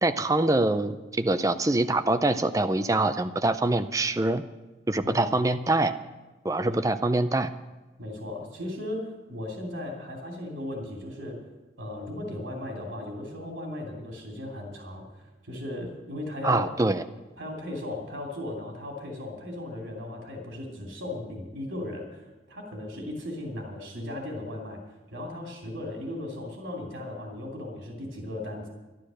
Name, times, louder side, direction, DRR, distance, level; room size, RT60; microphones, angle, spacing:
voice 1, 0.0-4.4 4.9-5.9 6.4-7.5 16.4-17.0, right 2 dB, 15° right, 10 dB, 0.5 m, -24 dB
voice 2, 8.0-11.4 11.8-15.0 15.4-16.7 17.4-24.8 25.1-28.7, left 1 dB, 70° right, 0 dB, 2.9 m, -36 dB
12.5 x 11.5 x 6.3 m, 1.2 s
head